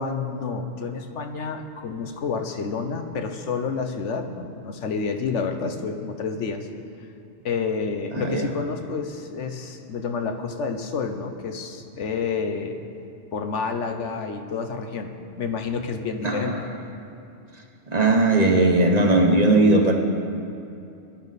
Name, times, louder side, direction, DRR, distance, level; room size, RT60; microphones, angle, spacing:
voice 1, 0.0-6.7 7.4-12.8 13.3-16.7, left 5 dB, 80° left, 6 dB, 1.2 m, -29 dB
voice 2, 8.1-8.5 16.2-16.6 17.9-19.9, right 2 dB, 35° right, 2 dB, 1.1 m, -18 dB
19.0 x 11.0 x 4.1 m, 2.7 s
omnidirectional pair, 1.2 m